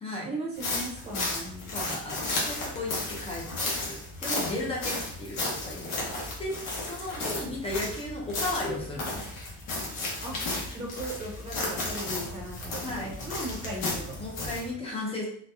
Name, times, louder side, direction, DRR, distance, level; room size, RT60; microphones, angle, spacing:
voice 1, 0.2-1.7 5.7-5.9 10.2-10.4 10.7-14.2, right 1 dB, 15° right, -3 dB, 0.8 m, -37 dB
Footsteps in the forest, 0.6-14.7, left 2 dB, 65° left, 1.1 m, -34 dB
voice 2, 1.7-2.2 2.4-6.0 6.4-6.5 6.8-9.3 12.8-13.1 14.2-15.3, left 2 dB, 15° left, -3 dB, 0.6 m, -35 dB
3.9 x 2.3 x 2.6 m, 0.62 s
cardioid pair, 180°, 36 cm